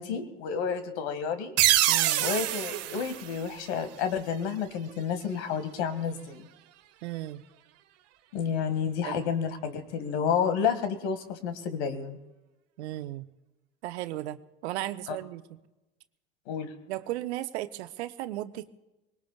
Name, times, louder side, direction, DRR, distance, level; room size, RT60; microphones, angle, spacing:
voice 1, 0.0-1.5 2.2-6.5 8.3-12.2 15.1-15.2 16.5-16.7, left 7 dB, 65° left, 9 dB, 2.0 m, -30 dB
sound 1, 1.6-4.1, right 13 dB, 45° right, 1.1 m, -26 dB
voice 2, 1.9-2.3 7.0-7.4 9.0-9.3 12.8-13.3 13.8-15.4 16.9-18.7, right 15 dB, 65° right, 11 dB, 0.9 m, -35 dB
24.0 x 20.5 x 2.4 m, 1.0 s
hypercardioid pair, 80°, 36 cm